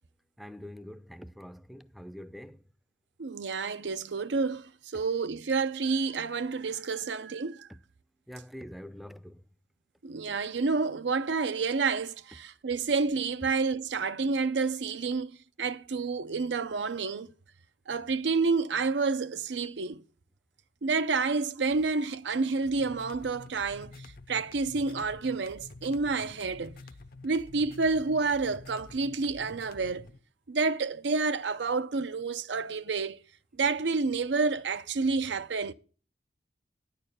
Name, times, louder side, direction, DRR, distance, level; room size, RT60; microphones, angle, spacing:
voice 1, 0.4-2.6 7.7-7.8 8.3-9.4, equal, ahead, 0.5 m, -45 dB
voice 2, 3.2-7.7 10.0-17.3 17.9-20.0 20.8-23.9 24.3-26.7 27.2-30.1 30.5-33.2 33.6-35.7, right 4 dB, 75° right, 0.6 m, -29 dB
sound 1, 22.6-30.2, left 2 dB, 55° left, 0.7 m, -49 dB
9.8 x 6.8 x 6.8 m
head